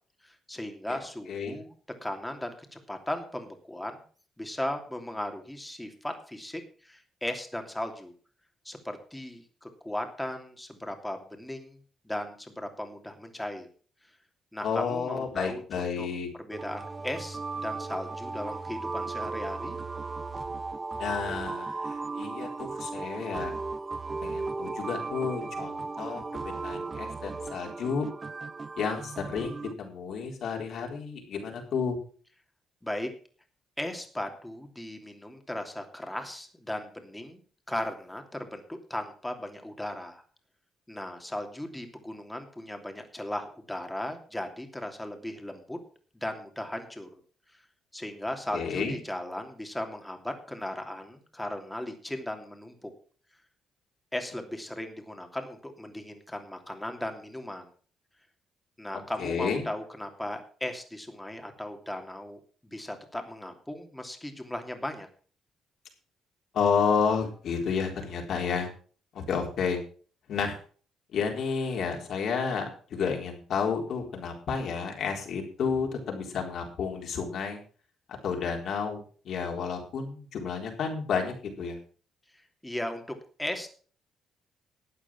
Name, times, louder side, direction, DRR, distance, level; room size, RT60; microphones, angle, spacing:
voice 1, 0.2-1.7 2.0-4.0 4.4-8.1 8.6-11.8 12.0-13.7 14.5-16.1 16.4-19.8 32.8-33.1 33.8-37.4 37.7-40.2 40.9-45.8 46.1-47.2 47.5-47.6 47.9-52.9 54.1-57.7 58.8-65.1 82.6-83.7, left 1 dB, 5° left, 4 dB, 2.8 m, -37 dB
voice 2, 14.6-16.3 20.9-23.5 24.2-28.1 28.8-32.0 48.5-48.9 59.2-59.6 66.5-68.7 69.1-69.8 70.3-70.6 71.1-77.6 78.1-81.8, left 6 dB, 65° left, 2 dB, 4.0 m, -31 dB
sound 1, 16.5-29.7, right 3 dB, 30° right, 0.8 m, -36 dB
13.0 x 8.8 x 6.1 m, 0.43 s
cardioid pair, 90°, 0 cm